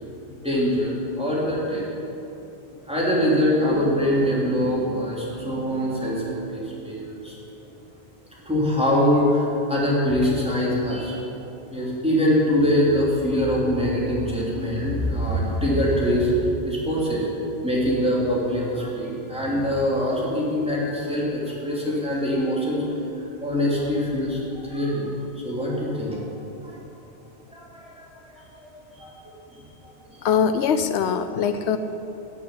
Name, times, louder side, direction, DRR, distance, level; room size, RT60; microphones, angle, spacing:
voice 1, 0.3-0.9 1.2-1.8 2.9-7.4 8.4-11.2 11.7-17.3 17.6-23.0 23.4-25.1 25.4-26.2 26.6-26.8 27.5-28.1 28.3-28.5 28.9-29.1 29.5-29.6 30.1-30.2, equal, 5° right, -6 dB, 3.4 m, -23 dB
voice 2, 30.2-31.8, left 7 dB, 80° left, 10 dB, 0.9 m, -22 dB
13.5 x 6.8 x 9.8 m, 3.0 s
omnidirectional pair, 1.1 m